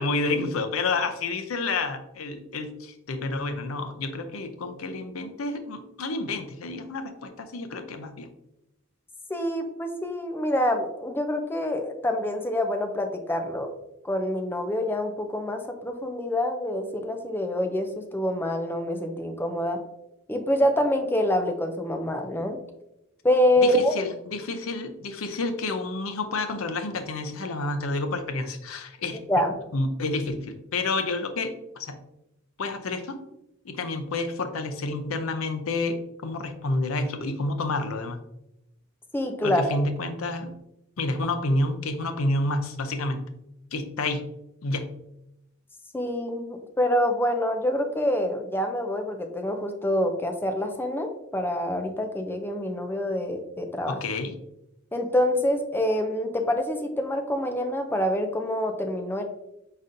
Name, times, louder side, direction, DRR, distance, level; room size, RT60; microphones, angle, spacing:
voice 1, 0.0-8.3 23.6-29.2 29.7-32.0 32.6-33.2 33.6-38.2 39.4-40.5 41.0-43.2 43.7-44.3 44.6-44.9 53.9-54.3, left 2 dB, 75° left, 7 dB, 0.6 m, -29 dB
voice 2, 9.3-13.7 14.0-19.8 20.3-22.6 23.2-23.9 29.3-29.5 39.1-39.6 45.9-54.0 54.9-59.2, left 1 dB, 10° left, 5 dB, 0.5 m, -26 dB
4.9 x 4.1 x 2.6 m, 0.87 s
head